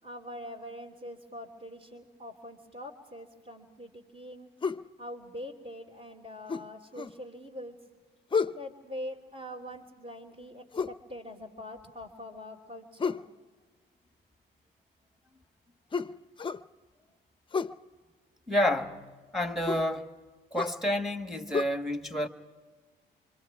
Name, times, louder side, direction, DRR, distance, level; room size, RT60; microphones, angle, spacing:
voice 1, 0.0-4.5 5.0-7.8 8.5-13.2, left 1 dB, 35° right, 3.2 m, -43 dB
sound 1, 4.6-4.9 6.5-7.2 8.3-8.6 10.7-11.0 13.0-13.3 15.9-16.7 17.5-17.8 19.7-19.9 20.6-20.8 21.5-21.6, left 5 dB, 25° left, 0.5 m, -31 dB
voice 2, 18.5-20.1 20.5-22.3, left 1 dB, ahead, 1.6 m, -29 dB
25.5 x 25.0 x 4.8 m
cardioid pair, 90°, 20 cm